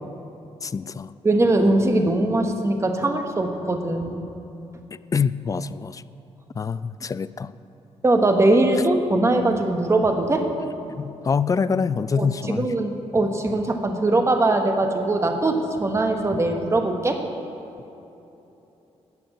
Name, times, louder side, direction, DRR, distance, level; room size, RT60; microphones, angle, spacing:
voice 1, 0.6-1.1 5.1-6.0 6.5-7.5 10.9-12.7, left 5 dB, 30° left, 16 dB, 0.3 m, -25 dB
voice 2, 1.2-4.2 8.0-10.5 12.2-17.2, right 2 dB, 25° right, 5 dB, 1.3 m, -21 dB
11.5 x 7.0 x 9.0 m, 3.0 s
cardioid pair, 105°, 11 cm